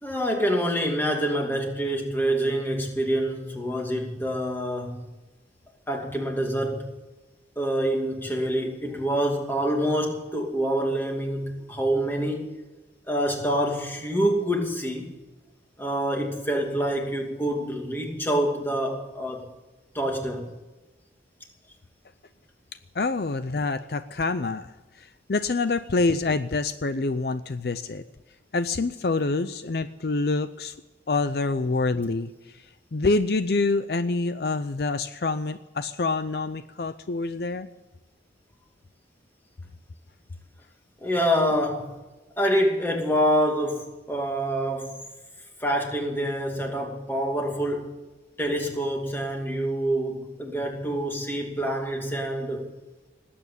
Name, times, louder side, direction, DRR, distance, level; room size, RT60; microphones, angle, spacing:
voice 1, 0.0-5.1 5.9-6.9 7.6-12.5 13.1-15.1 15.8-19.4 19.9-20.5 41.0-42.0 42.4-45.0 45.6-48.0 48.4-52.7, equal, 10° left, 2.5 m, -26 dB
voice 2, 22.9-28.0 28.5-30.8 31.1-37.7, left 3 dB, 55° left, 0.5 m, -26 dB
19.5 x 8.7 x 8.4 m
head